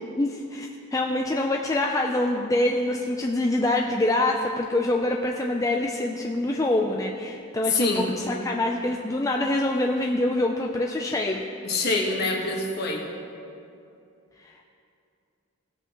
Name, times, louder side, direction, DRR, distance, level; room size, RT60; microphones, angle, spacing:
voice 1, 0.2-11.4 14.4-14.5, left 1 dB, 15° left, 0 dB, 0.4 m, -25 dB
voice 2, 7.7-8.1 11.6-13.0, left 3 dB, 50° left, -1 dB, 1.5 m, -25 dB
18.0 x 7.9 x 3.0 m, 2.6 s
head